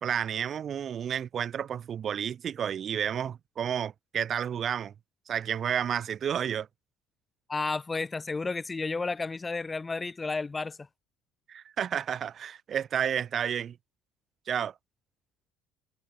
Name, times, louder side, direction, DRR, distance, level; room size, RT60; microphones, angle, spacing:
voice 1, 0.0-4.9 5.3-6.7 11.5-13.8 14.5-14.7, right 8 dB, 30° right, 2.3 m, -31 dB
voice 2, 7.5-10.9, left 3 dB, 10° left, 1.3 m, -32 dB
cardioid pair, 170°, 0 cm